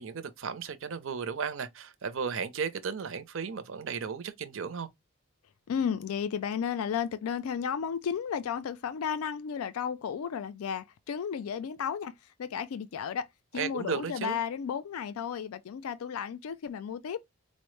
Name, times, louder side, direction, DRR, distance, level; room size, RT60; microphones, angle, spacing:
voice 1, 0.0-4.9 13.5-14.4, right 6 dB, 60° right, 0.5 m, -35 dB
voice 2, 5.7-12.1 12.4-13.3 13.5-17.2, left 7 dB, 80° left, 0.4 m, -33 dB
4.2 x 2.0 x 3.1 m
head